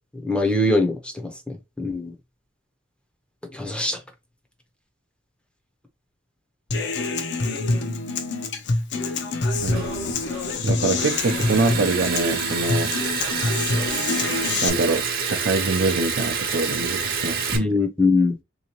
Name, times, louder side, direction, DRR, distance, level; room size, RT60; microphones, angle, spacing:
voice 1, 0.1-2.1 3.5-4.0 17.5-18.4, left 2 dB, 5° left, 0.6 m, -22 dB
Human voice / Acoustic guitar, 6.7-14.7, left 3 dB, 60° left, 0.7 m, -26 dB
Liquid, 9.5-17.6, right 5 dB, 50° right, 0.9 m, -28 dB
voice 2, 9.6-10.2 10.6-12.9 14.6-17.4, right 3 dB, 65° right, 0.6 m, -24 dB
3.6 x 2.9 x 2.9 m
head